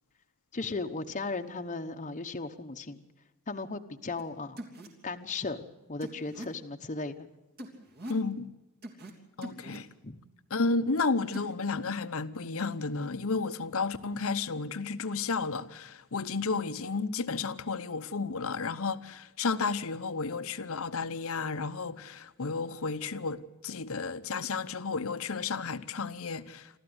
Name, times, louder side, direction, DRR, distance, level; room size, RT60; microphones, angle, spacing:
voice 1, 0.5-3.0 3.5-4.6 5.0-7.2 10.0-10.2, left 3 dB, 35° left, 1.0 m, -36 dB
sound 1, 4.2-4.3 4.6-4.9 6.0-6.5 7.6-8.2 8.8-9.1 9.4-9.8 11.3-11.5, equal, 45° right, 3.2 m, -42 dB
voice 2, 8.1-8.5 9.4-9.9 10.5-26.8, left 4 dB, 65° left, 0.9 m, -32 dB
27.0 x 13.5 x 8.0 m
head